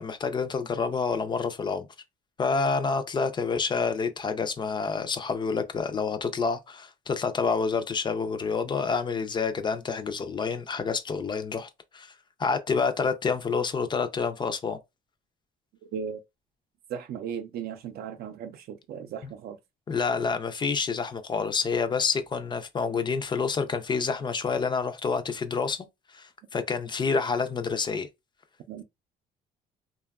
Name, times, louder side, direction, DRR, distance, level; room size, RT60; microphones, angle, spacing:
voice 1, 0.0-1.9 2.4-12.1 12.4-14.8 19.2-19.3 19.9-25.9 26.1-28.1, left 5 dB, 25° left, 0.4 m, -28 dB
voice 2, 16.9-19.6 28.7-28.8, right 7 dB, 65° right, 0.5 m, -36 dB
2.7 x 2.2 x 2.2 m
cardioid pair, 110°, 17 cm